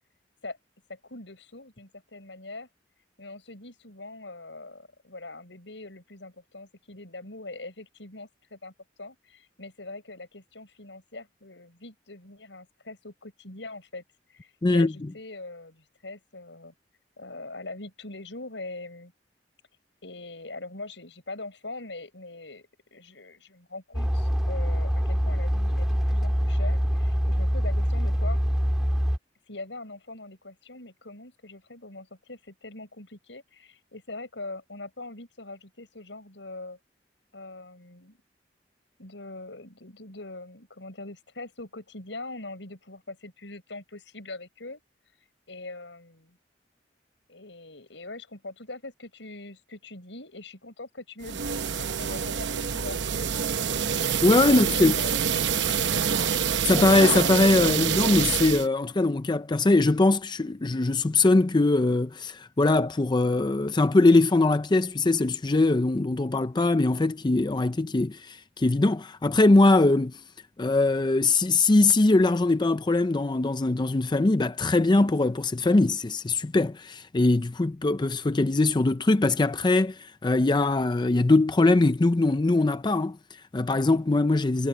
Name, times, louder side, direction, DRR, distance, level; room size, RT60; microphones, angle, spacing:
voice 1, 0.9-2.7 3.2-8.7 9.0-14.0 14.3-16.7 17.2-19.1 20.0-28.4 29.5-36.8 37.3-38.2 39.0-44.8 45.5-46.4 47.3-53.3 54.0-54.2 54.5-56.1, left 2 dB, 80° left, 6.5 m, -42 dB
voice 2, 14.6-14.9 54.2-55.0 56.6-70.2 70.6-84.7, left 2 dB, 25° left, 0.5 m, -22 dB
sound 1, 23.9-29.2, equal, 5° right, 2.3 m, -24 dB
sound 2, 51.2-58.7, right 7 dB, 70° right, 0.8 m, -26 dB
head